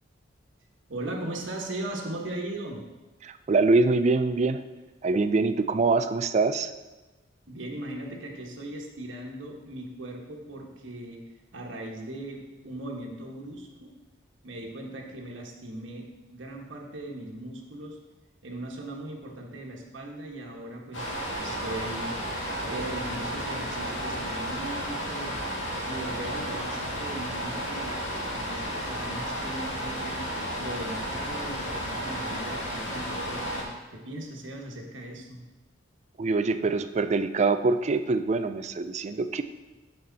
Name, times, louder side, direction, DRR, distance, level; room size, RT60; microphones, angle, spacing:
voice 1, 0.9-2.8 7.5-11.2 11.5-13.9 14.4-18.0 18.4-22.2 22.6-25.4 25.8-28.0 28.3-35.4, right 1 dB, 75° right, 0 dB, 1.4 m, -38 dB
voice 2, 3.2-4.6 5.0-6.7 36.2-39.4, right 3 dB, 35° right, 10 dB, 0.4 m, -24 dB
sound 1, 20.9-33.6, equal, 75° left, 2.1 m, -33 dB
7.8 x 6.9 x 4.1 m, 1.1 s
head